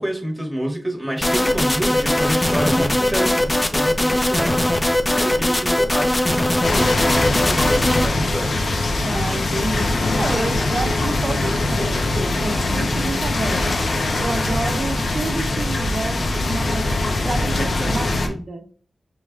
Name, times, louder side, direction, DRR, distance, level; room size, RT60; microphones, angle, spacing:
voice 1, 0.0-8.5, equal, ahead, -1 dB, 1.6 m, -28 dB
sound 1, 1.2-8.1, left 1 dB, 20° left, 0.6 m, -20 dB
sound 2, 6.6-18.3, left 2 dB, 80° left, 0.8 m, -22 dB
voice 2, 9.0-9.9 10.1-13.8 14.2-18.6, right 2 dB, 60° right, 6 dB, 0.7 m, -29 dB
5.3 x 3.2 x 2.4 m, 0.43 s
cardioid pair, 55°, 0 cm